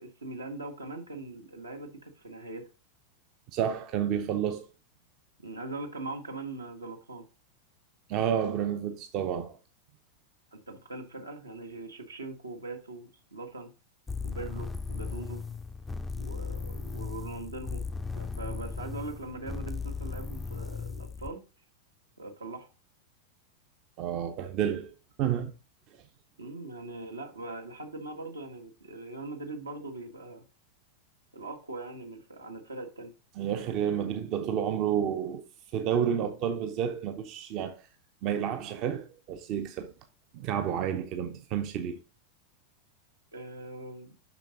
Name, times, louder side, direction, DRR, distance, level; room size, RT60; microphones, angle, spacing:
voice 1, 0.0-2.7 5.4-7.3 10.5-13.7 14.2-15.4 16.2-17.8 18.1-21.4 22.2-22.7 26.4-30.4 31.3-33.1 43.3-44.1, right 2 dB, 75° right, 1.6 m, -41 dB
voice 2, 3.5-4.7 8.1-9.6 24.0-24.9 25.2-25.5 33.4-35.4 35.7-37.8 38.2-39.9 40.3-42.0, right 9 dB, 40° right, 0.7 m, -30 dB
sound 1, 14.1-21.3, left 4 dB, 10° left, 0.4 m, -37 dB
6.9 x 5.9 x 3.8 m
figure-of-eight pair, 90°, 0 cm